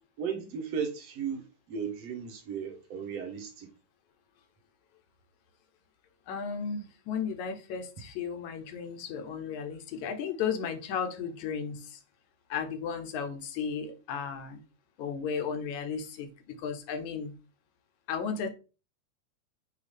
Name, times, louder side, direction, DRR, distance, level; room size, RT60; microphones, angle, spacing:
voice 1, 0.2-3.7, right 7 dB, 55° right, 2.4 m, -35 dB
voice 2, 6.3-12.0 12.5-14.6 15.0-17.4 18.1-18.5, left 6 dB, 70° left, 2.4 m, -34 dB
8.2 x 3.1 x 5.2 m
omnidirectional pair, 3.7 m